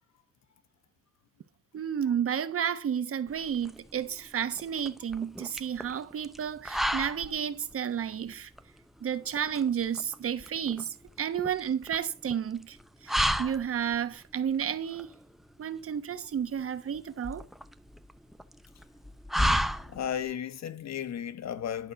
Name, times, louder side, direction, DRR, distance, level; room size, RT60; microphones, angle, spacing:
voice 1, 1.7-8.5 9.0-12.8 13.0-15.1 15.6-17.4, right 8 dB, 50° right, 1.0 m, -31 dB
sound 1, 3.3-20.3, equal, ahead, 0.8 m, -34 dB
voice 2, 19.9-21.9, left 9 dB, 60° left, 1.2 m, -34 dB
11.5 x 4.4 x 6.9 m
cardioid pair, 90°, 30 cm